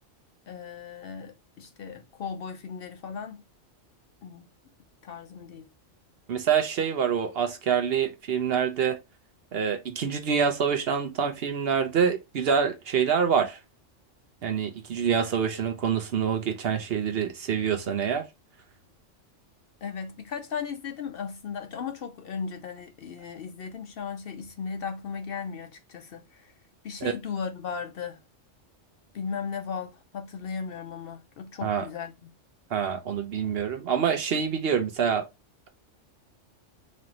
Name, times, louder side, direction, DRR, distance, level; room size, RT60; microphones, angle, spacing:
voice 1, 0.5-3.4 4.2-4.5 5.0-5.7 19.8-26.5 26.8-28.2 29.1-32.3, left 6 dB, 60° left, 0.7 m, -36 dB
voice 2, 6.3-9.0 9.5-13.6 14.4-18.3 27.0-27.1 31.6-31.9 32.7-35.2, right 7 dB, 60° right, 0.8 m, -26 dB
4.2 x 2.6 x 2.9 m
omnidirectional pair, 1.3 m